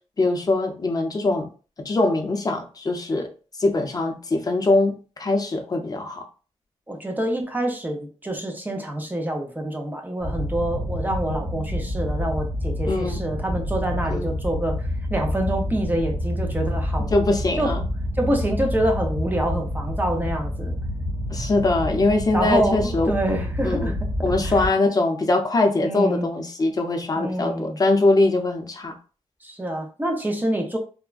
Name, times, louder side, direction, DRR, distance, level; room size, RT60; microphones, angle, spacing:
voice 1, 0.2-1.5 1.8-3.3 3.6-6.2 12.9-13.2 14.1-14.3 17.1-17.8 21.3-23.1 23.6-24.0 24.2-28.9, left 2 dB, 35° left, 4 dB, 0.5 m, -22 dB
voice 2, 6.9-17.1 17.6-17.7 18.2-20.8 22.3-24.7 25.8-26.3 27.2-27.8 29.4-30.8, right 1 dB, 15° right, 2 dB, 0.5 m, -26 dB
sound 1, 10.2-24.7, equal, 40° right, 1.3 m, -28 dB
3.4 x 2.1 x 2.3 m, 0.37 s
wide cardioid pair, 130°, 12 cm